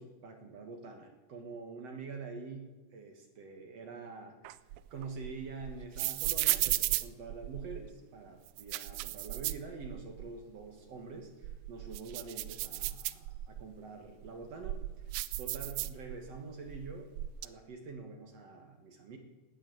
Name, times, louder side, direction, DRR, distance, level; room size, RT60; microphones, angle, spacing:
voice 1, 0.0-4.6 4.9-14.8 15.4-17.1 17.4-19.2, right 4 dB, 55° right, 4 dB, 2.5 m, -46 dB
sound 1, 4.4-7.9 8.5-10.3 10.6-10.7 11.3-13.6 14.2-16.4 16.7-17.5, right 16 dB, 85° right, 1.6 m, -35 dB
18.0 x 9.8 x 8.0 m, 1.2 s
omnidirectional pair, 3.9 m